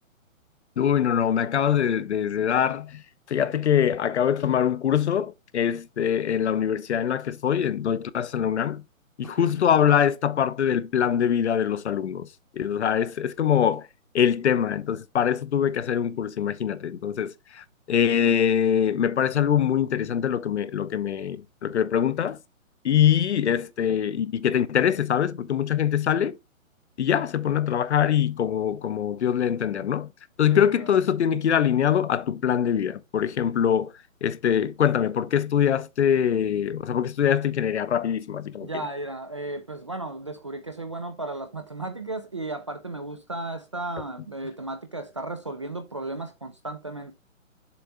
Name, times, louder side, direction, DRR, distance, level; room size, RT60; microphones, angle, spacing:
voice 1, 0.8-3.0 3.3-8.8 9.2-12.3 12.5-13.9 14.1-22.4 22.8-26.4 27.0-30.1 30.4-33.9 34.2-38.7, left 9 dB, 55° left, 0.7 m, -23 dB
voice 2, 30.5-30.9 38.6-47.1, right 2 dB, 25° right, 0.4 m, -34 dB
7.1 x 4.3 x 3.6 m
hypercardioid pair, 145°, 41 cm